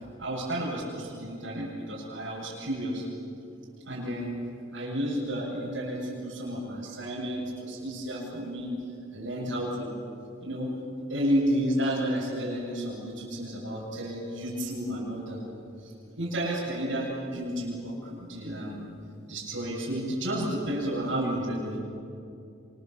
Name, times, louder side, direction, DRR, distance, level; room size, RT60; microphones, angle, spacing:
voice 1, 0.2-3.0 3.9-4.4 4.7-8.7 9.1-9.9 10.4-10.7 11.1-15.4 15.8-18.9 19.3-21.8, equal, 75° right, -6 dB, 7.9 m, -31 dB
28.0 x 26.5 x 7.8 m, 2.5 s
head